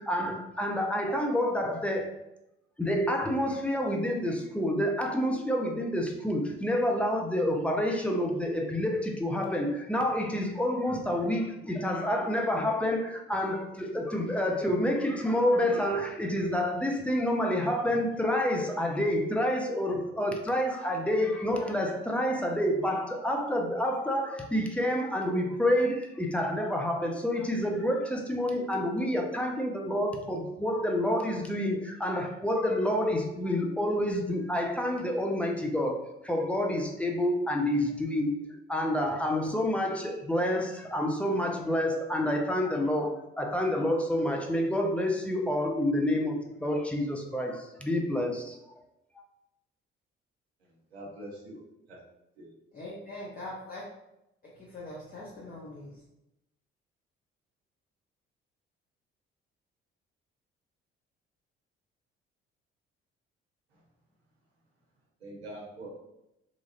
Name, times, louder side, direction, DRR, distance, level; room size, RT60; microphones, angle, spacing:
voice 1, 0.0-2.1 2.8-38.3 38.7-48.6 49.2-49.3, left 1 dB, 5° left, 1 dB, 0.4 m, -28 dB
voice 2, 50.9-51.6 51.9-52.0 52.4-52.5 65.2-65.9, right 1 dB, 85° right, -4 dB, 0.7 m, -43 dB
voice 3, 52.7-53.8 54.4-56.0, left 1 dB, 30° left, -6 dB, 0.8 m, -42 dB
3.1 x 2.4 x 2.4 m, 0.86 s
figure-of-eight pair, 45°, 31 cm